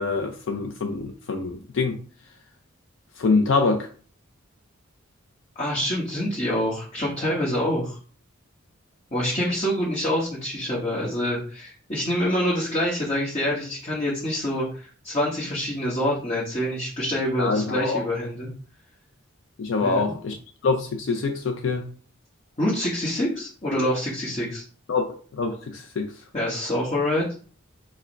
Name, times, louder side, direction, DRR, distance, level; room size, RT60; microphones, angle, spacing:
voice 1, 0.0-2.0 3.2-3.9 17.4-18.0 19.6-20.4 20.6-21.8 24.9-26.1, left 4 dB, 65° left, 0.4 m, -25 dB
voice 2, 5.5-8.0 9.1-18.5 19.8-20.2 22.6-24.6 26.3-27.3, left 1 dB, 30° left, 1.2 m, -26 dB
4.5 x 2.1 x 4.5 m
head